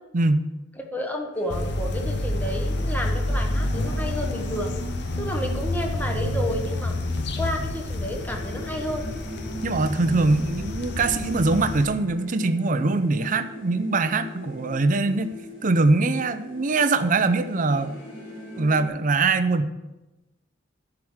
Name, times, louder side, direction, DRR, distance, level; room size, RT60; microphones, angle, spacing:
voice 1, 0.1-0.4 9.6-15.3 15.6-17.9 18.6-19.7, right 3 dB, 45° right, 11 dB, 0.6 m, -22 dB
voice 2, 0.8-4.7 5.2-6.9 7.4-9.1, left 1 dB, 10° left, 2 dB, 1.1 m, -31 dB
sound 1, 1.3-18.9, right 1 dB, 90° left, 3.2 m, -40 dB
sound 2, 1.5-11.9, left 1 dB, 60° left, 0.9 m, -29 dB
11.0 x 4.9 x 6.3 m, 1.0 s
head